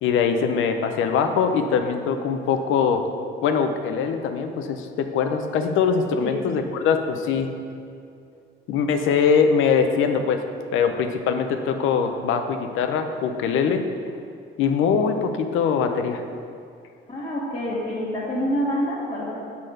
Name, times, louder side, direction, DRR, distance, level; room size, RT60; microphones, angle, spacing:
voice 1, 0.0-3.1 3.4-7.5 8.7-10.4 10.7-13.9 14.6-16.2, left 6 dB, 85° left, 6 dB, 0.6 m, -22 dB
voice 2, 17.1-19.3, equal, 25° left, -8 dB, 1.7 m, -27 dB
6.5 x 4.1 x 6.4 m, 2.4 s
cardioid pair, 90°, 20 cm